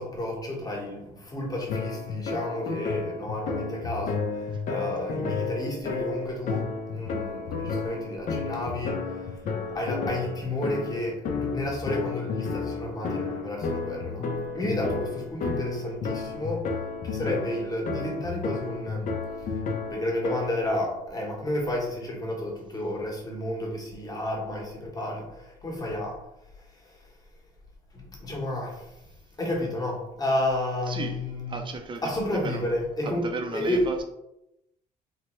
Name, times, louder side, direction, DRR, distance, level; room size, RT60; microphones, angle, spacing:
voice 1, 0.0-9.4 9.7-14.3 14.5-16.7 17.0-19.1 19.4-19.6 19.9-26.2 26.6-27.1 27.9-29.0 29.4-31.6 32.0-33.9, left 1 dB, 20° left, -2 dB, 1.0 m, -31 dB
sound 1, 1.7-20.8, left 4 dB, 50° left, 0.5 m, -32 dB
voice 2, 30.9-32.7 33.0-34.0, right 3 dB, 30° right, 4 dB, 0.5 m, -35 dB
3.3 x 2.1 x 3.0 m, 0.87 s
cardioid pair, 110°, 17 cm